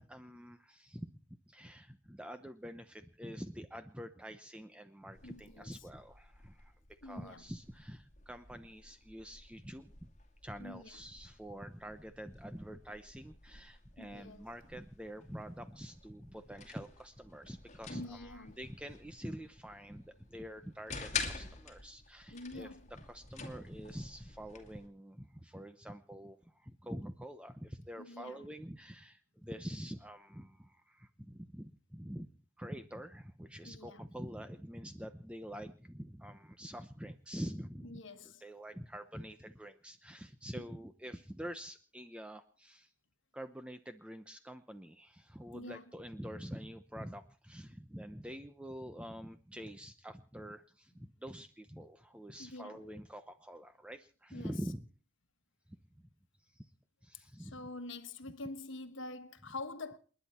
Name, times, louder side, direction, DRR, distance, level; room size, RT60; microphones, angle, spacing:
voice 1, 0.0-6.8 7.0-10.1 10.4-32.3 32.6-42.9 43.3-54.8 55.7-56.1 56.4-56.7 57.0-57.6, equal, 5° right, 0.8 m, -46 dB
sound 1, 5.1-24.9, left 5 dB, 35° left, 2.2 m, -48 dB
voice 2, 5.2-5.7 7.0-7.4 10.6-11.0 14.0-14.5 17.9-18.6 22.3-22.9 28.0-28.5 33.6-34.0 37.8-38.4 45.5-45.8 52.4-52.9 54.3-54.5 57.4-60.0, left 2 dB, 65° left, 1.4 m, -46 dB
29.0 x 10.5 x 4.4 m
head